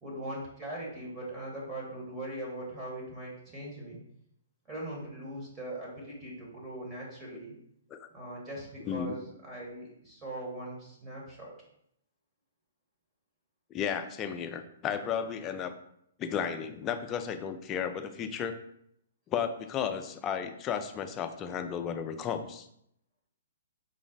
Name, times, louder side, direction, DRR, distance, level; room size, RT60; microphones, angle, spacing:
voice 1, 0.0-4.0 4.7-7.5 8.1-11.5, right 1 dB, 20° right, -4 dB, 1.2 m, -40 dB
voice 2, 13.7-15.7 16.2-18.5 19.3-22.7, left 7 dB, 25° left, 8 dB, 0.3 m, -33 dB
3.9 x 2.0 x 3.9 m, 0.73 s
hypercardioid pair, 140°, 0 cm